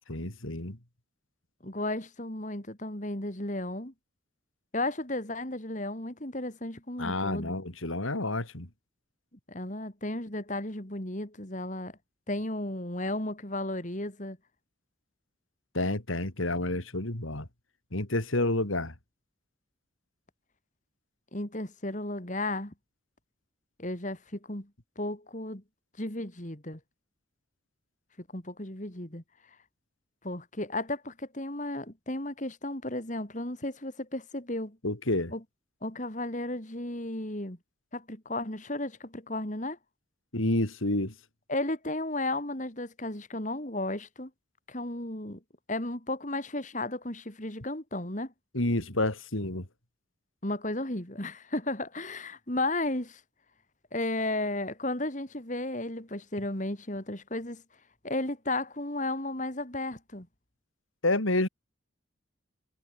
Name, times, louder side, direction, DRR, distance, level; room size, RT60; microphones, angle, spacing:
voice 1, 0.1-0.8 7.0-8.7 15.7-17.5 17.9-18.9 34.8-35.3 40.3-41.1 48.5-49.7 61.0-61.5, left 2 dB, 85° left, 3.7 m, -29 dB
voice 2, 1.6-3.9 4.7-7.6 9.5-11.9 12.3-14.4 21.3-22.7 23.8-24.7 25.0-25.6 26.0-26.8 28.3-29.2 30.2-34.8 35.3-35.4 35.8-37.6 37.9-39.8 41.5-44.3 44.7-45.4 45.7-48.3 50.4-53.2 53.9-57.6 58.0-60.3, left 2 dB, 40° left, 3.2 m, -34 dB
head